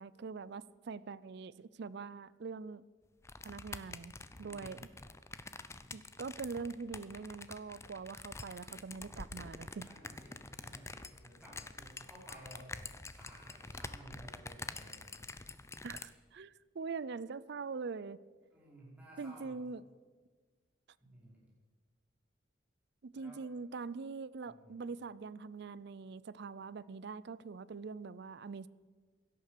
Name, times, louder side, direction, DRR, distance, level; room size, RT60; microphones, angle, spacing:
voice 1, 0.0-2.8 3.4-4.9 5.9-9.9 15.8-18.2 19.2-19.8 23.0-28.7, right 4 dB, 55° right, 0.4 m, -43 dB
sound 1, 3.2-16.0, left 3 dB, 15° left, 0.6 m, -47 dB
voice 2, 4.4-4.9 9.8-12.7 13.1-15.3 18.5-19.6 21.0-21.4 23.1-23.4 24.5-24.8, right 1 dB, 5° right, 5.4 m, -56 dB
17.0 x 12.0 x 6.8 m
head